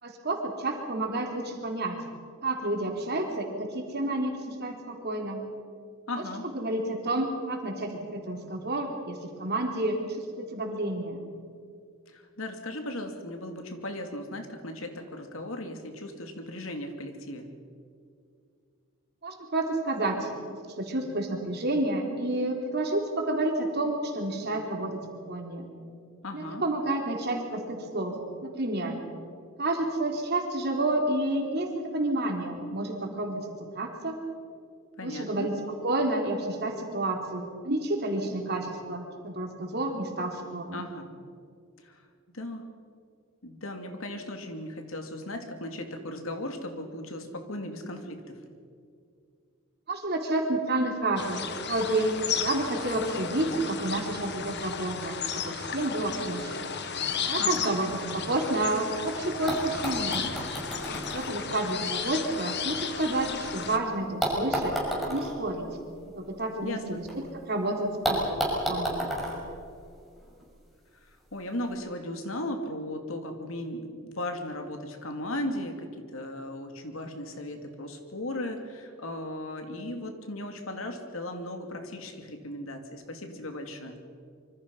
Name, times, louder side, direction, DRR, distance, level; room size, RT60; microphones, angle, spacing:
voice 1, 0.0-2.0 2.4-5.4 6.5-11.2 19.2-20.3 20.6-25.0 25.3-25.7 26.3-29.0 29.6-33.4 33.7-34.2 35.0-35.6 35.8-40.9 49.9-56.7 57.3-60.3 60.9-64.8 65.0-65.6 66.2-68.2 68.7-69.1, right 2 dB, 50° right, 2 dB, 3.6 m, -30 dB
voice 2, 6.1-6.5 12.1-17.5 26.2-26.6 35.0-35.5 40.7-41.1 41.8-42.0 42.3-42.7 43.4-48.4 57.4-57.7 66.6-67.0 70.9-84.0, left 1 dB, 75° left, 5 dB, 2.8 m, -37 dB
sound 1, 51.2-63.8, left 6 dB, 55° left, 1.6 m, -34 dB
sound 2, 59.0-59.1 59.5-63.6 64.2-67.2 67.4-67.5 68.0-70.4 71.4-71.5, right 1 dB, ahead, 6.0 m, -33 dB
26.0 x 24.5 x 5.6 m, 2.3 s
head